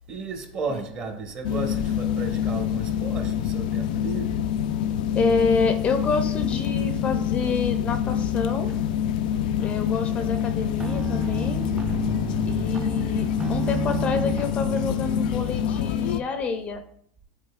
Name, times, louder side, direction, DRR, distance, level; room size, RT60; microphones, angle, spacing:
voice 1, 0.1-4.5, right 3 dB, 35° right, 1.4 m, -34 dB
sound 1, 1.4-16.2, left 9 dB, 80° left, 0.4 m, -26 dB
voice 2, 5.1-8.7 9.6-11.7 12.5-16.8, left 4 dB, 30° left, 0.5 m, -28 dB
sound 2, 6.1-16.1, right 1 dB, 90° right, 2.1 m, -49 dB
sound 3, 10.8-15.9, right 5 dB, 20° right, 0.4 m, -33 dB
10.5 x 4.3 x 2.4 m
supercardioid pair, 140°, 4 cm